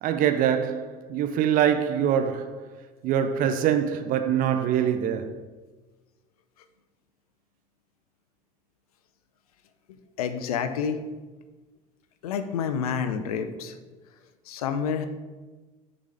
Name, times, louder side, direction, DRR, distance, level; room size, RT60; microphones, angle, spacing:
voice 1, 0.0-2.7 3.0-5.4, right 9 dB, 50° right, 0.5 m, -24 dB
voice 2, 10.2-11.0 12.2-13.8 14.5-15.1, left 7 dB, 80° left, 0.5 m, -28 dB
6.2 x 4.0 x 4.8 m
hypercardioid pair, 70°, 19 cm